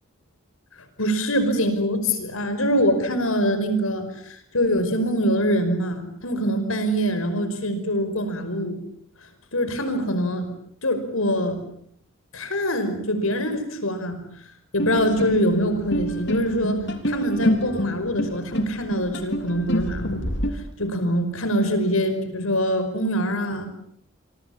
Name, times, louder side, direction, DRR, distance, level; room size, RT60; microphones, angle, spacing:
voice 1, 1.0-8.8 9.5-10.5 10.8-11.6 12.3-14.2 14.7-20.2 20.5-23.7, equal, 80° left, 9 dB, 5.4 m, -24 dB
sound 1, 14.8-20.5, equal, 55° left, 3.4 m, -27 dB
26.5 x 24.5 x 7.3 m, 0.69 s
head